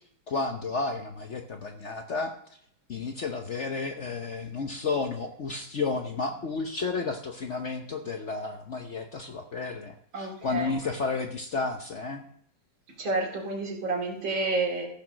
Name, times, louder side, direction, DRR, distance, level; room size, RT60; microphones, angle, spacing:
voice 1, 0.3-2.3 2.9-12.2, left 4 dB, 50° left, 5 dB, 0.9 m, -32 dB
voice 2, 10.1-10.7 13.0-14.8, right 3 dB, 85° right, 1 dB, 3.3 m, -29 dB
15.0 x 5.8 x 6.2 m, 0.65 s
omnidirectional pair, 2.1 m